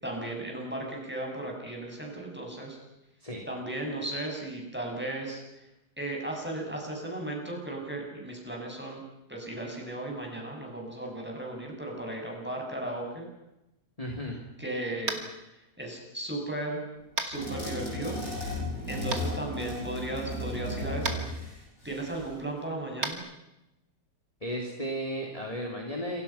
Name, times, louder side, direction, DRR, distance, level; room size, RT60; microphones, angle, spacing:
voice 1, 0.0-2.8 3.5-5.7 6.0-9.0 9.3-13.3 14.6-15.2 15.8-16.8 17.2-18.2 18.9-21.3 21.8-23.2, right 1 dB, 5° right, 0 dB, 7.2 m, -35 dB
voice 2, 14.0-14.4 24.4-26.2, equal, 20° left, 0 dB, 3.4 m, -34 dB
Tap, 15.0-15.3 17.2-17.3 19.1-19.2 21.0-21.2 23.0-23.1, right 4 dB, 55° right, 3.0 m, -31 dB
sound 1, 17.3-22.4, left 1 dB, 80° left, 8.7 m, -35 dB
28.5 x 25.0 x 5.9 m, 0.93 s
omnidirectional pair, 1.9 m